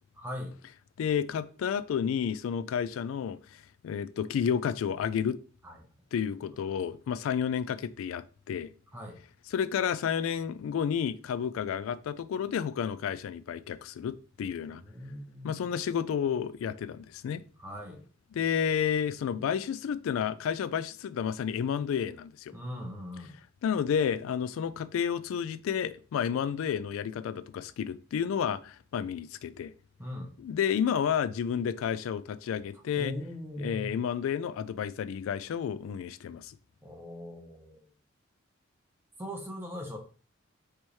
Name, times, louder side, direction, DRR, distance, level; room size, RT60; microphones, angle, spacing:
voice 1, 0.1-0.5 5.6-5.9 8.9-9.2 14.7-15.6 17.6-18.0 22.5-23.3 30.0-30.3 33.0-34.0 36.8-37.8 39.2-40.0, left 1 dB, 10° right, 0.8 m, -40 dB
voice 2, 1.0-5.4 6.1-8.7 9.5-14.8 15.4-17.4 18.3-22.5 23.6-29.7 30.4-33.1 33.6-36.5, left 8 dB, 85° left, 0.3 m, -31 dB
4.4 x 3.4 x 3.0 m
head